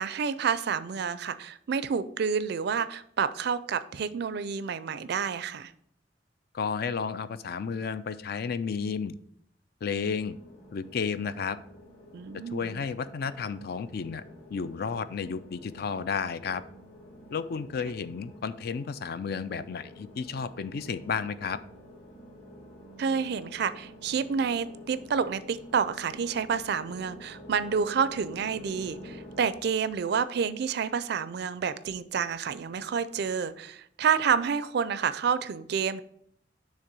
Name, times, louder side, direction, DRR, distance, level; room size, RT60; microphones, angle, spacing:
voice 1, 0.0-5.7 12.1-12.8 23.0-36.0, right 6 dB, 65° right, 14 dB, 0.4 m, -29 dB
voice 2, 6.5-9.1 9.8-10.4 10.7-11.6 12.5-14.2 14.5-16.6 17.3-21.6, left 6 dB, 60° left, 14 dB, 0.4 m, -32 dB
sound 1, 10.1-29.4, equal, 30° left, 1.7 m, -49 dB
6.5 x 3.4 x 6.0 m, 0.67 s
head